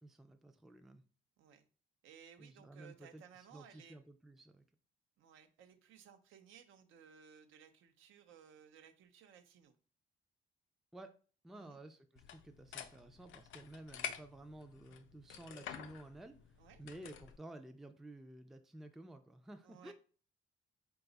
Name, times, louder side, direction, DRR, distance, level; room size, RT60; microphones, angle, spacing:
voice 1, 0.0-1.0 2.4-3.2 3.5-4.6 10.9-11.1 11.4-19.9, right 1 dB, ahead, 7 dB, 0.3 m, -53 dB
voice 2, 2.0-4.0 5.2-9.8 11.5-11.8 16.6-16.8 19.6-19.9, right 8 dB, 80° right, 8 dB, 0.6 m, -60 dB
sound 1, 12.2-17.4, left 8 dB, 75° left, 0.5 m, -49 dB
3.9 x 2.3 x 3.9 m, 0.39 s
cardioid pair, 90°, 20 cm